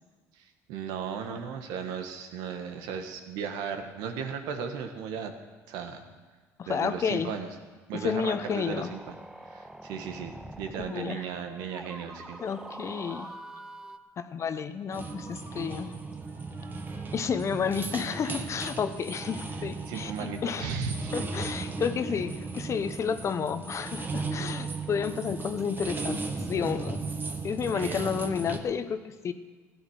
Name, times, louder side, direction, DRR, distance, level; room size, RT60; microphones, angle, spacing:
voice 1, 0.4-5.3 5.7-6.1 6.7-7.5 7.9-9.0 9.4-12.4 19.9-21.1 27.7-28.1, right 6 dB, 75° right, 6 dB, 1.5 m, -36 dB
voice 2, 6.6-7.3 7.9-8.9 10.8-11.3 12.4-13.3 14.2-15.9 17.1-20.8 21.1-26.2 26.5-27.0 27.4-29.3, left 6 dB, 45° left, 11 dB, 1.0 m, -31 dB
sound 1, 7.9-14.0, right 1 dB, 10° right, 0.9 m, -45 dB
Ringtone, 12.0-14.1 14.9-18.3, right 1 dB, 60° right, 3.2 m, -54 dB
sound 2, 14.9-28.6, right 4 dB, 30° right, 1.6 m, -36 dB
15.5 x 10.0 x 6.5 m, 1.4 s
supercardioid pair, 75°, 7 cm